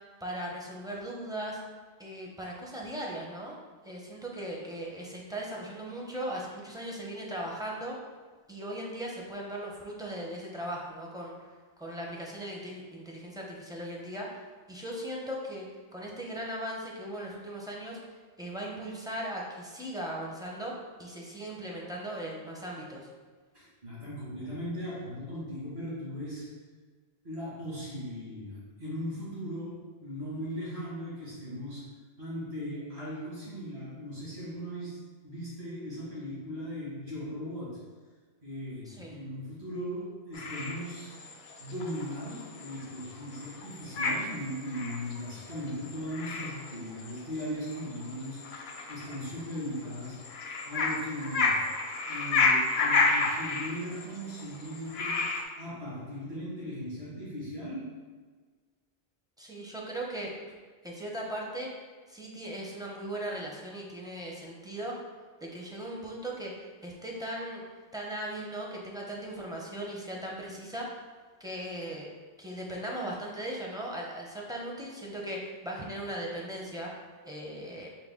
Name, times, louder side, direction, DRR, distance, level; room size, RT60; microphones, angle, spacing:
voice 1, 0.2-1.6 2.0-3.6 3.8-8.0 8.5-11.4 11.8-15.6 15.9-18.0 18.4-23.1 38.9-39.2 59.4-60.3 60.8-61.7 62.1-65.0 65.4-67.6 67.9-71.0 71.4-72.1 72.4-76.9 77.2-77.9, right 1 dB, 5° right, -3 dB, 0.4 m, -38 dB
voice 2, 23.5-26.5 27.2-31.9 32.2-35.0 35.2-37.9 38.4-41.1 41.6-48.5 48.9-50.3 50.6-51.7 52.0-55.3 55.6-58.0, equal, 75° right, -9 dB, 2.0 m, -38 dB
sound 1, 40.3-55.4, left 3 dB, 75° left, 0.8 m, -32 dB
5.2 x 2.2 x 3.5 m, 1.4 s
omnidirectional pair, 1.0 m